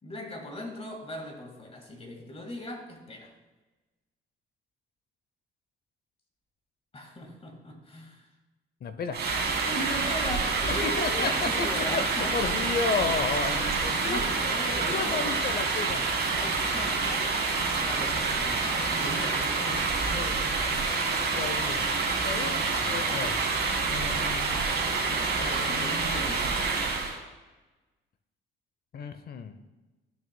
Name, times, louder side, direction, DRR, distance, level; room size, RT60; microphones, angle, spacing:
voice 1, 0.0-3.3 6.9-8.3 9.6-13.3 14.0-15.3 16.4-20.3 22.3-22.5 25.1-26.7, left 1 dB, 30° left, 3 dB, 1.9 m, -39 dB
voice 2, 8.8-9.2 10.7-12.0 12.3-14.4 14.9-16.1 20.1-20.9 21.4-22.6 22.9-23.4 23.9-24.7 25.1-26.1 28.9-29.6, left 5 dB, 50° left, 9 dB, 0.7 m, -33 dB
sound 1, 9.1-27.2, right 4 dB, 60° right, 2.3 m, -27 dB
13.5 x 6.3 x 2.2 m, 1.2 s
cardioid pair, 90°, 20 cm